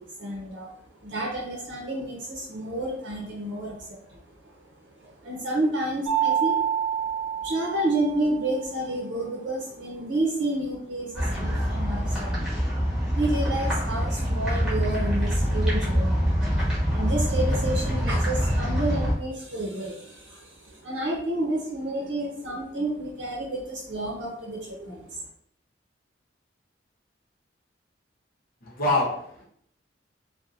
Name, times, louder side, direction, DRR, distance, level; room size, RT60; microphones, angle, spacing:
voice 1, 0.0-4.6 5.0-6.6 7.1-12.5 13.1-25.2, right 1 dB, 75° right, -3 dB, 0.7 m, -30 dB
Mallet percussion, 6.1-8.6, right 9 dB, 30° right, 1.0 m, -27 dB
sound 1, 11.1-19.1, equal, 5° right, 1.1 m, -25 dB
voice 2, 28.6-29.5, left 2 dB, 50° left, -3 dB, 0.8 m, -25 dB
2.8 x 2.2 x 2.5 m, 0.67 s
head